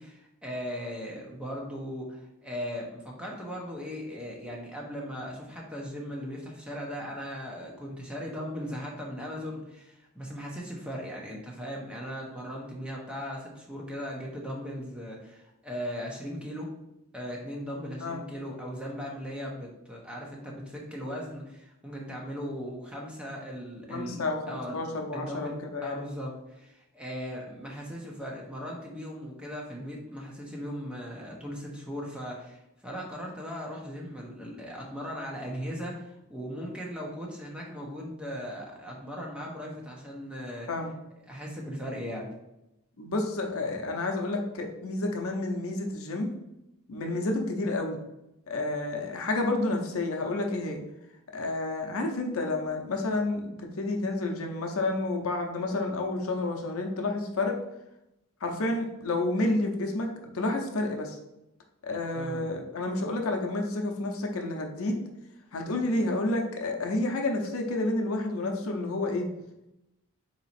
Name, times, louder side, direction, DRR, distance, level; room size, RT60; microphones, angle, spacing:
voice 1, 0.0-16.7 17.1-24.2 24.5-24.8 25.1-25.6 25.8-40.7 41.3-42.3 62.1-62.5, equal, 5° right, -2 dB, 0.7 m, -38 dB
voice 2, 23.9-26.0 40.7-40.9 43.0-46.3 46.9-48.0 48.5-50.8 51.3-57.6 58.4-61.2 61.8-65.0 65.5-69.3, left 2 dB, 70° left, 3 dB, 0.6 m, -30 dB
4.0 x 3.0 x 4.2 m, 0.90 s
head